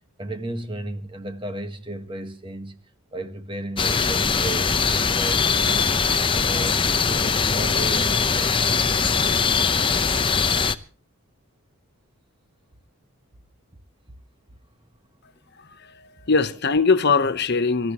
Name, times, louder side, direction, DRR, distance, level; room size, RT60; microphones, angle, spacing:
voice 1, 0.2-2.8 3.1-5.9 6.4-8.7, right 1 dB, 25° right, 1.5 m, -34 dB
sound 1, 3.8-10.8, left 5 dB, 25° left, 0.7 m, -21 dB
voice 2, 15.6-17.9, left 4 dB, 50° left, 1.0 m, -22 dB
26.5 x 14.0 x 3.0 m
head